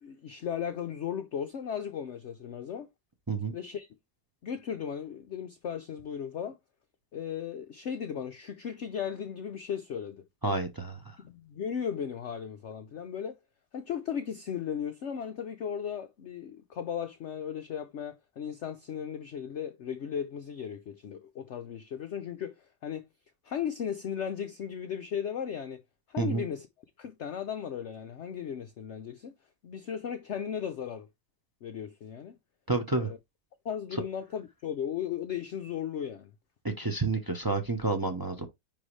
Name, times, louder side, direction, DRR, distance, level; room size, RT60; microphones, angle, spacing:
voice 1, 0.0-2.9 3.5-3.9 4.4-6.6 7.1-10.2 11.2-13.4 13.7-22.6 22.8-23.1 23.4-25.8 26.1-26.7 27.0-29.3 29.6-31.1 31.6-32.3 33.0-33.2 33.6-36.3, left 8 dB, 60° left, 0.7 m, -36 dB
voice 2, 10.4-11.0 26.2-26.4 32.7-33.1 36.6-38.5, right 3 dB, 30° right, 0.4 m, -29 dB
9.7 x 3.5 x 3.2 m
omnidirectional pair, 1.9 m